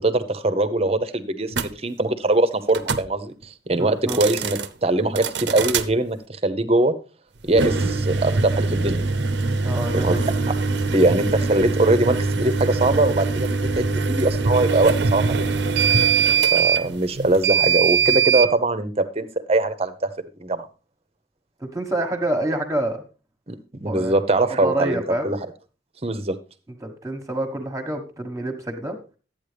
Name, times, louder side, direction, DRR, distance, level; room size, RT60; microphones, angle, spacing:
voice 1, 0.0-6.9 7.4-9.0 9.9-10.5 10.9-13.5 13.8-15.6 16.5-20.1 20.4-20.7 23.5-25.4 26.0-26.4, right 2 dB, 35° right, 12 dB, 0.9 m, -22 dB
sound 1, 1.5-1.7 2.7-3.1 4.0-4.7 5.2-5.9 7.5-18.5, right 5 dB, 75° right, 0.7 m, -22 dB
voice 2, 3.7-4.2 9.6-10.3 21.6-23.0 23.9-24.1 24.6-25.3 26.8-29.0, right 1 dB, 20° right, 3 dB, 1.4 m, -27 dB
12.5 x 8.8 x 3.4 m, 0.33 s
head